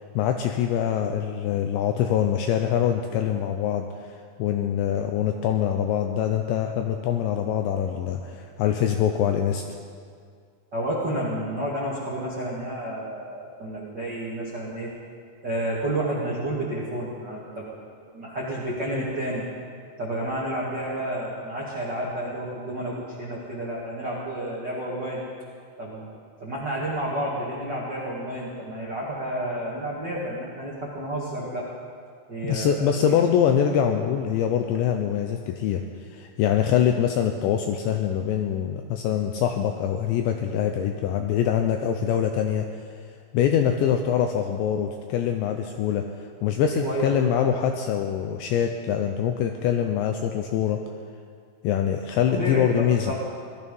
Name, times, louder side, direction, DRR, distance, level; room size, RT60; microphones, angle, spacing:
voice 1, 0.1-9.6 32.4-42.7 43.3-46.0 46.4-50.8 51.6-53.1, left 9 dB, 85° left, 5 dB, 2.6 m, -24 dB
voice 2, 10.7-14.9 15.4-17.7 18.1-19.4 20.0-25.2 25.8-26.1 26.4-31.7 32.3-33.2 46.7-47.5 52.3-52.7 53.1-53.2, right 1 dB, 75° right, -6 dB, 0.9 m, -30 dB
18.0 x 13.0 x 5.4 m, 2.1 s
omnidirectional pair, 5.8 m